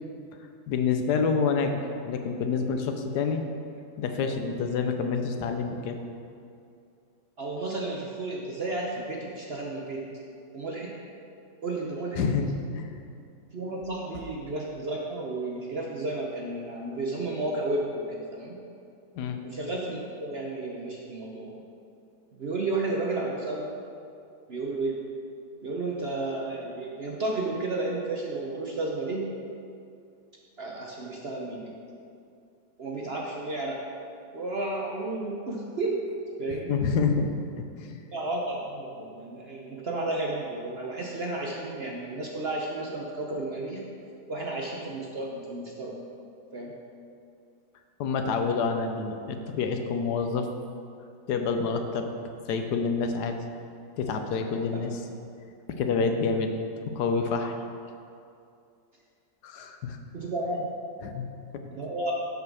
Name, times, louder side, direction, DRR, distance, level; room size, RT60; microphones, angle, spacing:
voice 1, 0.7-3.4 4.0-6.0 12.1-12.9 19.1-19.4 36.7-37.3 37.8-38.0 48.0-50.5 51.3-52.1 52.5-53.4 54.0-55.0 55.8-56.5 56.9-57.5 59.4-60.0 61.0-61.3, left 5 dB, 75° left, 6 dB, 1.2 m, -27 dB
voice 2, 7.4-10.0 10.5-10.9 11.6-12.3 13.5-18.6 19.4-21.6 22.4-23.7 24.5-25.0 25.6-29.3 30.6-31.7 32.8-33.8 34.3-36.0 36.4-36.7 38.1-43.9 44.3-45.9 46.5-46.7 54.7-54.8 60.1-60.7 61.7-62.1, right 2 dB, 50° right, -2 dB, 0.8 m, -32 dB
6.9 x 5.4 x 6.2 m, 2.5 s
omnidirectional pair, 1.8 m